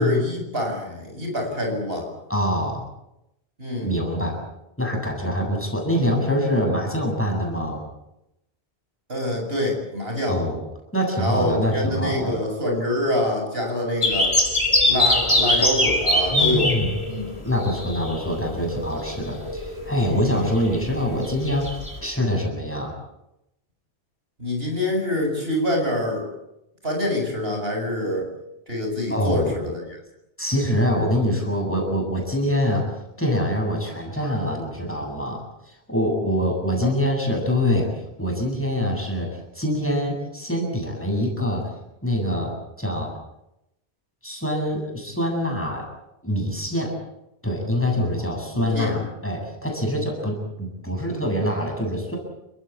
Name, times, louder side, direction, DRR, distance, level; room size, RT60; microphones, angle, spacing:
voice 1, 0.0-2.1 3.6-3.9 9.1-10.4 11.2-14.4 14.9-16.8 17.1-17.3 20.2-20.5 24.4-26.3 26.8-28.3 28.7-30.0 36.8-36.9 48.5-48.9, left 1 dB, 65° right, 1 dB, 7.6 m, -26 dB
voice 2, 2.3-2.8 3.8-4.3 4.8-7.8 10.3-10.6 10.9-12.4 16.3-17.0 17.4-21.7 22.0-22.9 29.1-29.6 30.4-32.8 33.2-37.9 38.2-39.3 39.5-41.7 42.0-43.2 44.2-45.8 46.2-47.0 47.4-52.2, equal, 10° left, 1 dB, 7.9 m, -24 dB
sound 1, 14.0-22.0, left 1 dB, 25° left, 5.0 m, -23 dB
30.0 x 16.5 x 8.6 m, 0.86 s
omnidirectional pair, 1.1 m